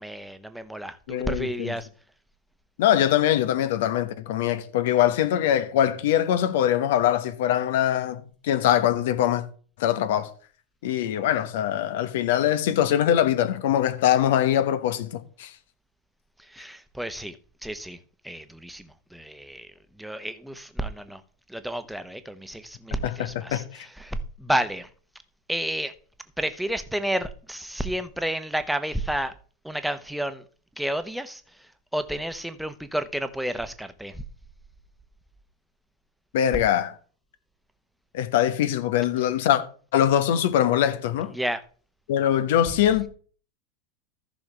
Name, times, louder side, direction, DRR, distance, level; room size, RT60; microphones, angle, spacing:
voice 1, 0.0-1.9 16.5-17.3 17.6-18.0 18.2-19.7 20.0-21.2 21.5-23.6 24.0-24.9 25.5-25.9 26.4-29.3 29.6-30.4 30.8-31.4 31.9-34.2 41.3-41.6, right 1 dB, ahead, 1.0 m, -31 dB
voice 2, 1.1-1.7 2.8-9.4 9.8-10.3 10.8-15.5 23.0-23.9 36.3-36.9 38.1-39.6 39.9-41.3 42.1-43.1, left 11 dB, 65° left, 1.0 m, -23 dB
14.5 x 6.1 x 3.4 m
hypercardioid pair, 85°, 0 cm